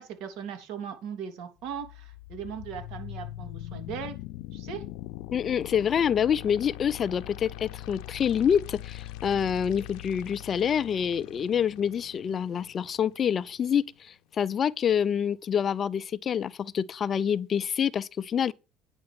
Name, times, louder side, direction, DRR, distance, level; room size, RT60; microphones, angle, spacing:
voice 1, 0.0-4.2 4.5-4.8, right 7 dB, 75° right, 3.2 m, -38 dB
sound 1, 1.6-13.6, left 16 dB, 85° left, 0.7 m, -42 dB
voice 2, 5.3-18.5, left 8 dB, 35° left, 0.5 m, -27 dB
9.7 x 5.4 x 7.7 m
cardioid pair, 125°, 0 cm